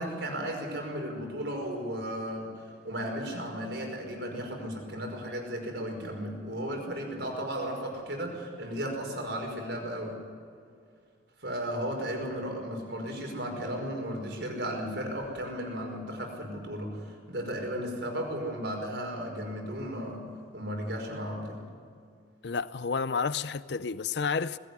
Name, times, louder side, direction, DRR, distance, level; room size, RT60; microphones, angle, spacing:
voice 1, 0.0-10.2 11.4-20.3 20.5-21.6, equal, 65° right, 5.5 m, -35 dB
voice 2, 22.4-24.6, left 5 dB, 60° left, 0.5 m, -30 dB
20.0 x 17.0 x 9.6 m
head